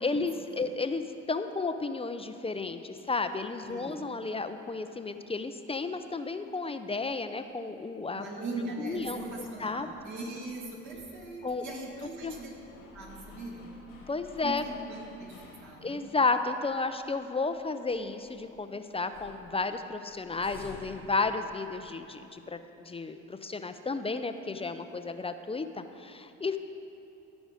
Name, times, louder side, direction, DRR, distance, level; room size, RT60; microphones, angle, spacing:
voice 1, 0.0-8.3 8.8-9.2 9.6-9.9 11.4-11.6 12.2-12.3 14.1-14.6 15.8-26.6, left 3 dB, 20° left, 9 dB, 0.4 m, -32 dB
voice 2, 8.1-12.5 12.9-13.7 14.4-16.0, right 2 dB, 60° right, -2 dB, 2.4 m, -40 dB
sound 1, 8.9-16.2 16.6-16.7 17.1-18.7 18.9-22.0, left 3 dB, 90° left, 1.8 m, -53 dB
15.5 x 5.2 x 5.0 m, 2.9 s
supercardioid pair, 70°, 33 cm